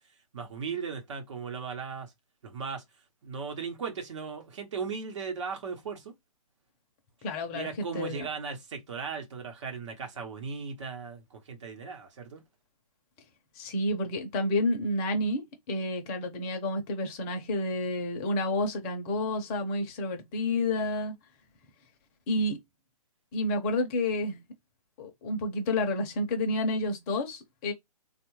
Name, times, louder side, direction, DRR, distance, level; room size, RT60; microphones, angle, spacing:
voice 1, 0.3-2.1 2.4-2.8 3.2-6.1 7.5-12.4, right 5 dB, 50° right, 1.0 m, -37 dB
voice 2, 7.2-8.3 13.6-21.1 22.3-22.6 23.3-24.4 25.0-27.7, left 1 dB, 25° left, 0.7 m, -30 dB
3.5 x 2.4 x 3.1 m
hypercardioid pair, 145°, 19 cm